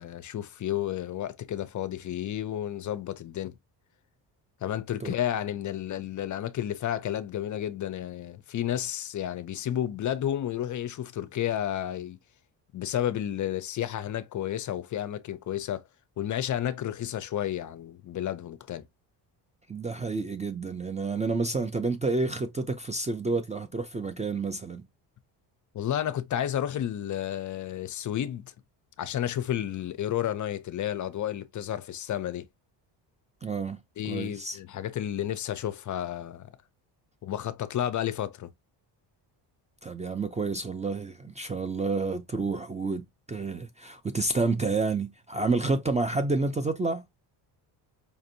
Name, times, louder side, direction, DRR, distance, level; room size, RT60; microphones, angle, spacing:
voice 1, 0.0-3.6 4.6-12.2 12.7-15.8 16.2-18.9 25.7-28.5 29.0-32.5 34.0-36.5 37.2-38.5, left 11 dB, 45° left, 0.5 m, -31 dB
voice 2, 19.7-24.9 33.4-34.6 39.8-47.0, right 3 dB, 15° right, 0.3 m, -29 dB
5.1 x 2.6 x 2.6 m
cardioid pair, 110°, 45 cm